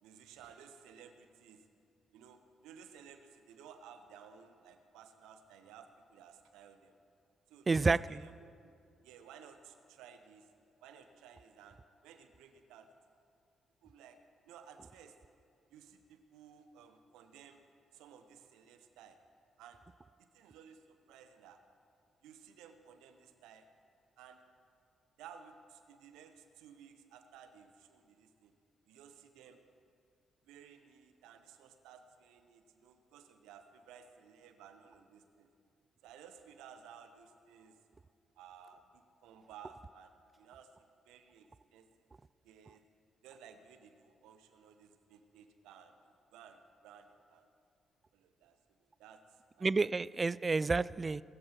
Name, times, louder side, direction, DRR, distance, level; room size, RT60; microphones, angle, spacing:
voice 1, 0.0-1.7 2.1-7.0 7.5-8.7 9.0-10.5 10.8-12.9 13.8-14.2 14.5-15.2 15.7-17.6 17.9-19.2 19.6-19.8 20.2-21.6 22.2-23.7 24.2-24.4 25.2-28.5 28.9-29.6 30.4-35.5 36.0-37.8 38.4-40.7 41.1-41.9 42.4-42.8 43.2-47.5 48.1-49.7 50.6-50.7, right 7 dB, 75° right, 7 dB, 1.0 m, -57 dB
voice 2, 7.7-8.2 49.6-51.2, right 3 dB, 35° right, 19 dB, 0.3 m, -30 dB
20.5 x 14.0 x 3.0 m, 2.4 s
hypercardioid pair, 40°, 0 cm